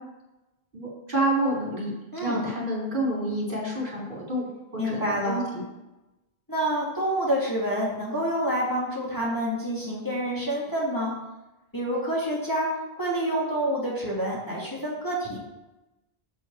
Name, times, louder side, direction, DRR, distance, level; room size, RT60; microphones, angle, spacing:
voice 1, 0.7-1.9 2.2-4.5 4.7-5.6, right 1 dB, 50° right, -5 dB, 3.9 m, -28 dB
voice 2, 4.8-5.4 6.5-11.1 11.7-12.7 13.0-15.4, equal, 20° left, -5 dB, 2.1 m, -27 dB
6.4 x 6.2 x 7.3 m, 1.0 s
omnidirectional pair, 1.1 m